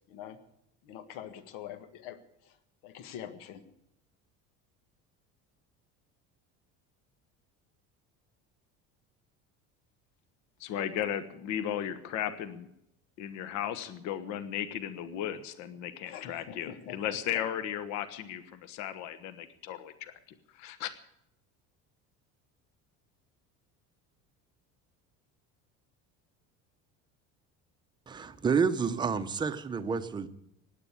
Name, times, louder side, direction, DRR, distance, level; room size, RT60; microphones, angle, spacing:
voice 1, 0.8-2.2 2.8-3.6 16.0-17.0 17.3-17.4, left 10 dB, 80° left, 1.6 m, -44 dB
voice 2, 10.6-12.7 13.2-20.1 20.5-20.9, left 10 dB, 60° left, 1.2 m, -35 dB
voice 3, 28.1-30.3, right 5 dB, 15° right, 0.7 m, -29 dB
16.5 x 10.5 x 8.3 m
cardioid pair, 170°, 32 cm